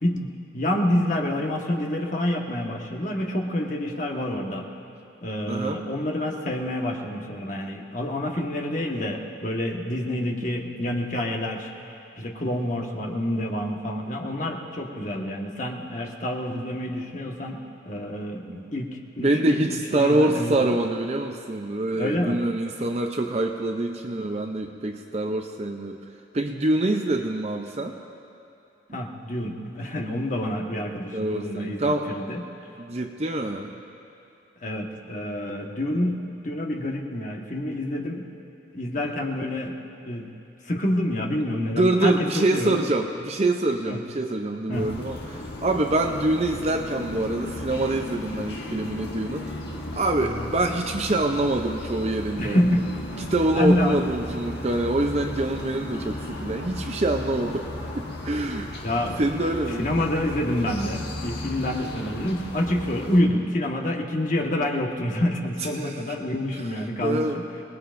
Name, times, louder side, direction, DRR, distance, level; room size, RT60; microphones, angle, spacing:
voice 1, 0.0-4.7 5.2-11.7 12.2-19.6 19.9-20.7 21.9-22.4 28.9-32.4 34.6-38.3 38.7-39.8 40.0-40.3 40.6-42.8 43.9-44.1 44.7-44.9 50.2-50.5 52.4-52.9 53.5-54.1 58.8-59.2 59.8-67.4, left 1 dB, 45° left, 0 dB, 1.4 m, -27 dB
voice 2, 5.5-5.8 10.7-10.9 15.1-15.2 18.5-18.7 19.2-26.0 26.3-28.0 31.1-32.1 32.8-33.7 41.7-49.5 49.9-52.6 53.2-57.7 58.0-58.7 59.2-59.9 61.8-61.9 65.6-66.0 66.5-66.6 67.0-67.4, right 2 dB, 35° right, 4 dB, 0.6 m, -25 dB
sound 1, 44.7-63.2, left 1 dB, 65° left, 1.7 m, -35 dB
26.5 x 19.0 x 2.6 m, 2.7 s
head